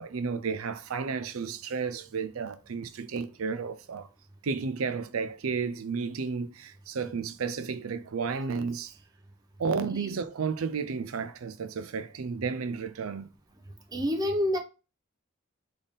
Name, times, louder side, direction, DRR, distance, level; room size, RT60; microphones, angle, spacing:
voice 1, 0.0-4.1 4.4-9.0 9.6-13.3, right 5 dB, 85° right, 0.5 m, -32 dB
voice 2, 13.9-14.6, left 1 dB, 20° right, 0.6 m, -27 dB
4.1 x 3.5 x 3.5 m
head